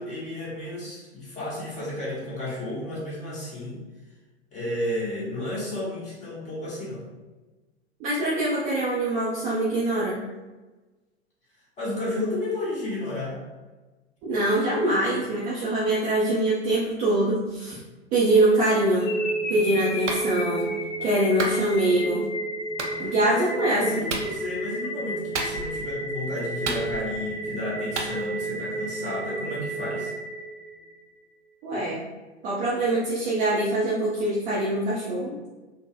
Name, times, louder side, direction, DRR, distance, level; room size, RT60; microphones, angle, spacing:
voice 1, 0.0-3.8 4.5-7.0 11.8-13.4 23.0-23.5 23.8-30.1, left 1 dB, 20° left, -7 dB, 1.1 m, -32 dB
voice 2, 8.0-10.2 14.2-17.8 18.1-19.1 19.5-20.7 21.0-22.2 23.0-24.0 31.6-32.0 32.4-35.3, right 1 dB, 20° right, -7 dB, 0.4 m, -24 dB
sound 1, 19.0-31.0, right 1 dB, 75° left, 0.6 m, -31 dB
Clapping, 20.1-20.3 21.4-21.6 22.8-22.9 24.1-24.3 25.3-25.8 26.6-27.2 28.0-28.1, right 3 dB, 80° right, 0.5 m, -30 dB
3.8 x 2.0 x 2.2 m, 1.2 s
figure-of-eight pair, 100°, 35 cm